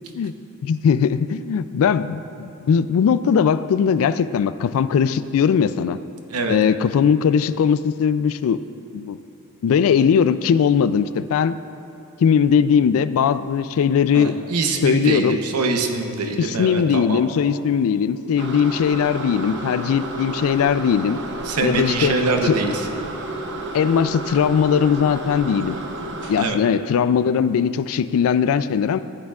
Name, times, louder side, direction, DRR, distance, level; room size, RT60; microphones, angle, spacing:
voice 1, 0.6-6.0 6.5-8.6 8.9-9.2 9.6-11.5 12.2-14.3 14.8-15.4 16.4-21.2 21.6-22.2 22.5-22.6 23.7-25.8 26.3-29.0, left 7 dB, 65° left, 15 dB, 0.3 m, -19 dB
voice 2, 14.1-17.2 21.4-22.9 26.4-26.6, right 3 dB, 85° right, 4 dB, 0.8 m, -24 dB
sound 1, 18.4-26.5, right 2 dB, 55° right, 0.7 m, -31 dB
14.0 x 8.8 x 2.4 m, 2.6 s
head